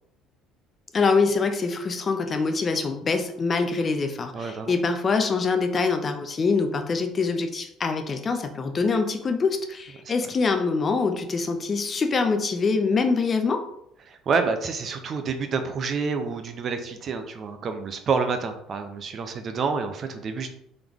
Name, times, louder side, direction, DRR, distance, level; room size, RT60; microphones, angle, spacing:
voice 1, 0.9-13.6, left 4 dB, 25° left, 6 dB, 0.4 m, -24 dB
voice 2, 4.3-4.7 10.0-10.1 14.1-20.5, right 5 dB, 35° right, 7 dB, 0.5 m, -28 dB
3.8 x 2.9 x 3.5 m, 0.74 s
cardioid pair, 140°, 0 cm